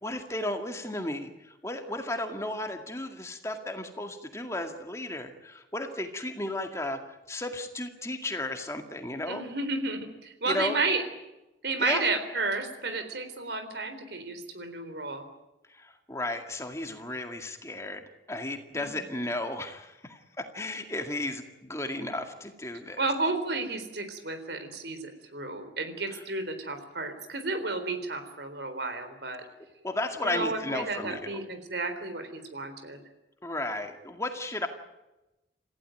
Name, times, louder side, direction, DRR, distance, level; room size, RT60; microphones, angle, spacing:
voice 1, 0.0-7.0 7.3-9.4 10.4-10.8 11.8-12.1 15.7-23.1 26.1-26.2 29.8-31.4 33.4-34.7, left 1 dB, 15° left, 5 dB, 2.1 m, -34 dB
voice 2, 9.3-11.0 11.6-15.2 18.8-18.9 23.0-29.4 30.2-33.0, right 3 dB, 65° right, 9 dB, 3.9 m, -32 dB
28.5 x 16.0 x 9.1 m, 0.99 s
head